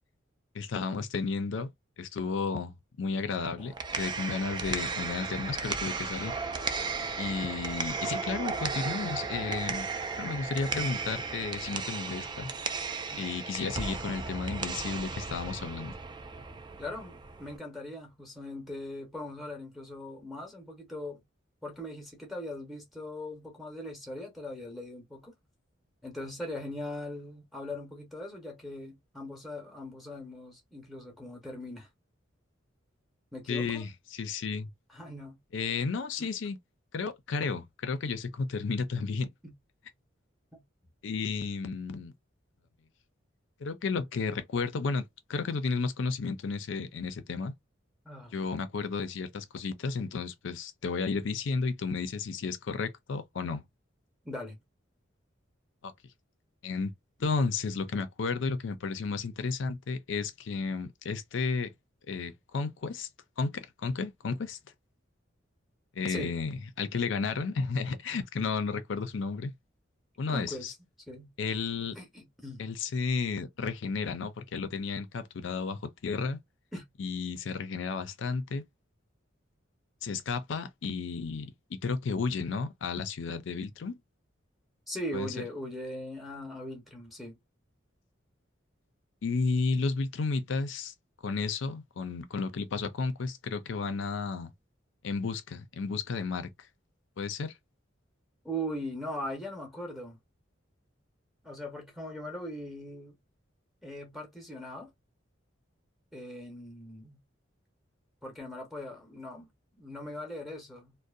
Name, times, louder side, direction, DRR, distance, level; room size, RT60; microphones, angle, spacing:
voice 1, 0.5-1.7 2.0-2.7 3.0-6.3 7.2-9.9 10.2-12.5 13.2-15.9 33.5-34.7 35.5-36.6 36.9-39.3 41.0-42.1 43.6-47.5 48.3-53.6 55.8-55.9 56.6-56.9 57.2-61.7 62.1-63.1 63.4-64.6 66.0-69.5 70.2-70.7 71.4-72.0 72.6-76.4 77.0-78.6 80.0-81.5 81.8-83.9 85.1-85.3 89.2-90.9 91.2-94.5 95.0-96.5 97.2-97.5, left 4 dB, 70° left, 0.5 m, -32 dB
sound 1, 3.6-17.6, right 4 dB, 25° right, 0.3 m, -35 dB
voice 2, 16.8-21.2 21.6-25.4 26.0-31.9 33.3-33.8 34.9-35.4 36.2-36.3 39.4-39.5 40.5-40.6 48.0-48.3 54.2-54.6 66.1-66.4 68.3-68.4 70.3-70.8 71.1-71.3 71.9-72.6 76.7-76.9 84.9-87.4 98.4-100.2 101.4-103.1 103.8-104.9 106.1-107.2 108.2-111.0, left 1 dB, ahead, 0.7 m, -40 dB
2.6 x 2.1 x 2.3 m
head